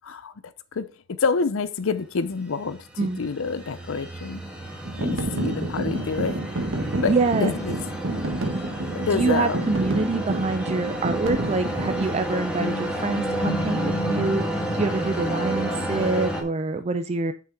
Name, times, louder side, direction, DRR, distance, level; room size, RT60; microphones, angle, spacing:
voice 1, 0.0-0.3 0.7-0.9 1.2-4.4 5.0-6.4 7.0-7.8 8.9-9.7, left 4 dB, 70° left, 0.5 m, -27 dB
sound 1, 2.3-16.4, right 1 dB, 5° right, 1.4 m, -32 dB
sound 2, 4.8-12.2, right 1 dB, 65° right, 1.2 m, -29 dB
voice 2, 7.0-7.5 9.1-17.3, right 3 dB, 30° right, 0.4 m, -25 dB
sound 3, 11.4-16.4, left 1 dB, 30° left, 0.9 m, -32 dB
6.2 x 5.8 x 4.7 m
head